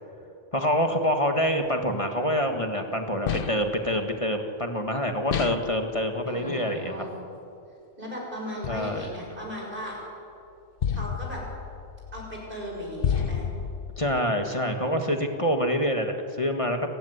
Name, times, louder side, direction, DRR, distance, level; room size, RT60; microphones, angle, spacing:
voice 1, 0.5-7.1 8.7-9.1 14.0-17.0, equal, 25° left, 4 dB, 2.0 m, -26 dB
sound 1, 3.3-3.8 5.3-5.8 8.6-9.3 10.8-14.2, left 7 dB, 50° left, 0.8 m, -31 dB
voice 2, 6.3-7.1 8.0-10.0 10.9-11.4 12.1-13.4, equal, 40° right, -2 dB, 6.7 m, -37 dB
30.0 x 16.5 x 9.7 m, 2.6 s
omnidirectional pair, 1.4 m